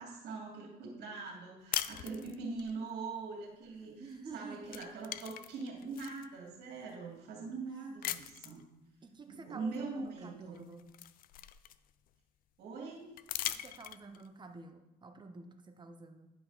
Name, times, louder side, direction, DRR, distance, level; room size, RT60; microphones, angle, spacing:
voice 1, 0.0-4.0 4.3-8.6 9.3-10.6 12.6-13.1, right 4 dB, 80° right, -1 dB, 2.5 m, -42 dB
sound 1, 1.7-2.7 4.1-4.3 4.6-6.3 6.9-7.0 8.0-8.6 10.1-10.2 10.5-12.1 13.2-14.3, left 12 dB, 60° left, 0.4 m, -40 dB
voice 2, 4.0-4.6 9.0-10.9 13.5-16.3, right 3 dB, 25° right, 6 dB, 0.9 m, -50 dB
10.0 x 5.1 x 4.0 m, 0.95 s
cardioid pair, 110°, 17 cm